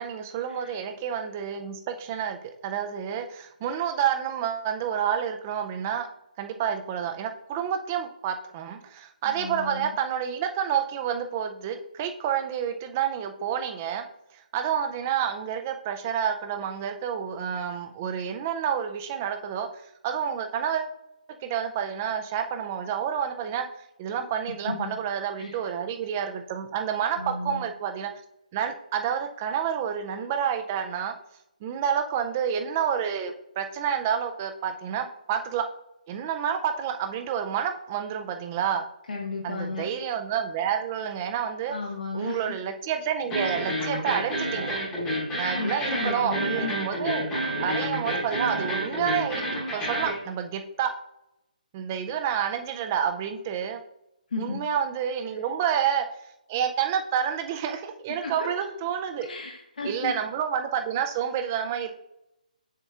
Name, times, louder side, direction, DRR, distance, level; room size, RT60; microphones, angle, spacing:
voice 1, 0.0-6.1 6.4-14.0 14.5-19.7 20.0-20.9 21.4-23.7 24.0-28.1 28.5-31.1 31.6-35.7 36.1-38.8 39.4-41.8 42.1-44.7 45.4-49.5 49.7-50.9 51.7-53.8 54.4-56.1 56.5-59.3 59.8-61.9, right 8 dB, 15° right, 6 dB, 0.3 m, -29 dB
voice 2, 9.2-9.9 24.5-25.0 25.4-25.6 27.1-27.6 39.1-39.9 41.7-42.6 45.5-46.8 47.1-47.3 54.3-54.6 58.2-58.7 59.2-60.1, left 3 dB, 75° left, -1 dB, 1.3 m, -34 dB
sound 1, 43.3-50.2, equal, 10° left, 1.0 m, -29 dB
7.1 x 6.6 x 2.3 m, 0.84 s
hypercardioid pair, 175°, 5 cm